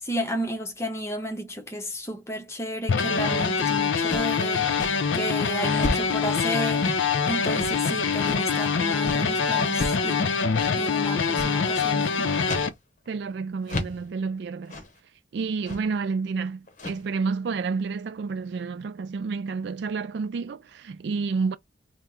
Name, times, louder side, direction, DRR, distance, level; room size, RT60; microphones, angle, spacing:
voice 1, 0.0-6.9 7.3-10.4 10.7-12.3, equal, 15° left, 0.7 m, -32 dB
sound 1, 2.9-12.7, left 5 dB, 85° left, 0.6 m, -24 dB
sound 2, 4.1-4.4 4.8-5.0 5.8-6.2 6.8-7.2 7.6-7.8 8.2-8.5 9.0-9.2 9.8-10.0 10.6-10.7 11.3-11.6 12.4-12.7 13.1-13.2 13.7-14.1 14.7-14.9 15.7-15.9 16.7-17.1, left 2 dB, 40° left, 0.8 m, -32 dB
voice 2, 13.1-14.8 15.3-21.5, right 4 dB, 65° right, 0.3 m, -30 dB
3.6 x 2.1 x 4.3 m
head